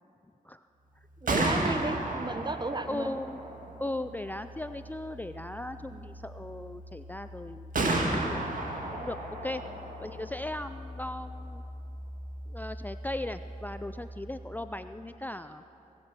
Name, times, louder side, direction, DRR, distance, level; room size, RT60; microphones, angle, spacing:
Gunshot gunfire, 1.0-14.8, right 2 dB, 65° right, 1.9 m, -35 dB
voice 1, 1.2-3.1 5.9-6.0, right 2 dB, 30° right, 10 dB, 0.9 m, -34 dB
voice 2, 2.9-3.4 3.8-7.7 8.0-8.5 8.9-9.6 10.0-11.6 12.5-15.6, left 1 dB, 10° left, 10 dB, 0.4 m, -37 dB
20.0 x 7.6 x 6.0 m, 2.7 s
cardioid pair, 45°, 15 cm